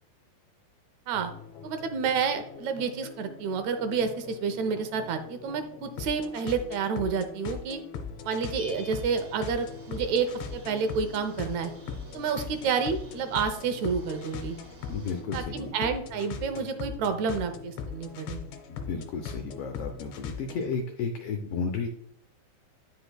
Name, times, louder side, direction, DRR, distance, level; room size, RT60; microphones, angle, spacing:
sound 1, 1.1-20.7, left 6 dB, 70° left, 1.8 m, -40 dB
voice 1, 1.6-7.8 8.3-11.7 12.1-14.6 15.3-18.4, right 5 dB, 75° right, 8 dB, 1.9 m, -29 dB
Bell, 8.5-10.4, left 1 dB, 35° left, 1.2 m, -48 dB
sound 2, 8.7-15.2, right 3 dB, 60° right, 2.1 m, -51 dB
voice 2, 14.9-15.7 18.7-21.9, left 5 dB, 90° left, 5 dB, 1.3 m, -33 dB
9.8 x 5.2 x 2.2 m, 0.73 s
omnidirectional pair, 3.4 m